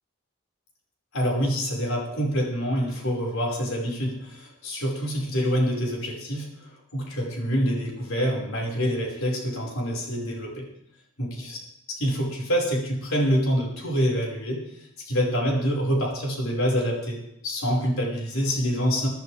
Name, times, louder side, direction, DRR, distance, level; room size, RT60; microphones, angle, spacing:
voice 1, 1.1-10.7 11.2-11.6 11.9-14.6 15.1-19.1, equal, 80° left, -2 dB, 5.3 m, -26 dB
24.0 x 11.0 x 3.5 m, 0.78 s
head